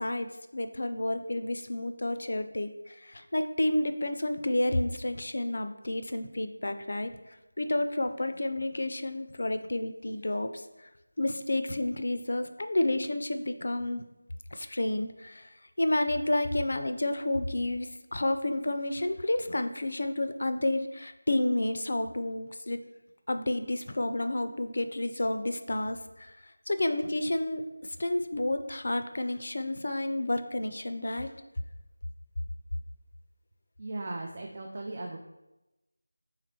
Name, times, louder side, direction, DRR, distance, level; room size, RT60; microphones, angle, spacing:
voice 1, 0.0-7.1 7.6-10.5 11.2-14.0 14.5-15.5 15.8-22.8 23.3-26.3 26.7-27.6 28.0-31.3, left 1 dB, 60° left, 9 dB, 0.4 m, -30 dB
voice 2, 33.8-35.2, right 2 dB, 35° right, 1 dB, 0.4 m, -37 dB
3.8 x 3.1 x 4.2 m, 0.98 s
figure-of-eight pair, 170°, 0 cm